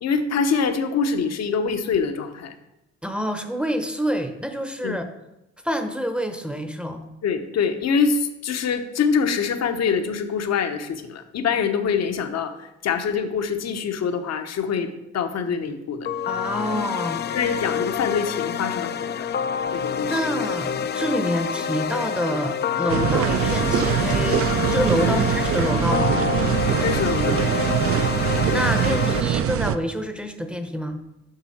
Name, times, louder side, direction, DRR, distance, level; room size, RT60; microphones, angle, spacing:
voice 1, 0.0-2.5 4.8-5.0 7.2-16.1 17.3-19.3 19.7-20.2 25.0-25.2 26.8-27.4, left 6 dB, 60° left, 8 dB, 0.9 m, -25 dB
voice 2, 3.0-5.0 5.6-7.1 16.3-17.2 20.1-26.2 28.5-31.0, equal, 5° right, 7 dB, 0.7 m, -27 dB
sound 1, 16.1-29.2, left 7 dB, 35° left, 0.4 m, -27 dB
sound 2, 22.9-29.8, right 10 dB, 50° right, 0.5 m, -23 dB
7.7 x 5.6 x 4.2 m, 0.93 s
cardioid pair, 90°, 30 cm